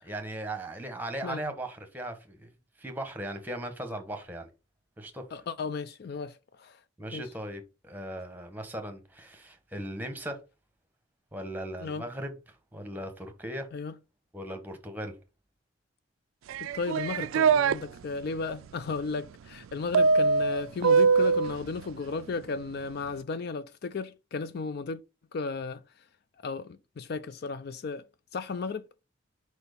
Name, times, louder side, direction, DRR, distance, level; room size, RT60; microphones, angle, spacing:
voice 1, 0.0-2.5 2.8-4.5 5.0-5.2 7.0-10.4 11.3-13.7 14.3-15.1, right 1 dB, 10° right, 1.0 m, -38 dB
voice 2, 5.3-6.8 7.1-7.3 11.8-12.1 13.7-13.9 16.6-25.0 25.3-25.8 26.4-28.1 28.3-28.8, left 4 dB, 50° left, 0.4 m, -35 dB
sound 1, 16.5-17.8 19.9-21.6, right 5 dB, 80° right, 0.3 m, -22 dB
4.7 x 4.4 x 5.1 m
head